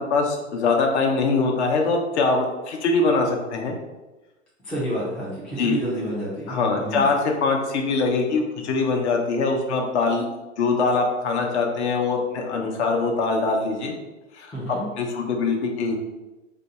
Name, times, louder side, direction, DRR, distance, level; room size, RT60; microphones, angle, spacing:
voice 1, 0.0-3.8 5.6-5.8 6.5-10.3 10.6-13.9 14.3-14.5 15.0-16.0, left 3 dB, 60° left, 2 dB, 0.8 m, -23 dB
voice 2, 4.6-7.0 14.5-14.9, right 1 dB, 5° left, -7 dB, 0.3 m, -29 dB
2.6 x 2.2 x 3.9 m, 1.1 s
hypercardioid pair, 120°, 38 cm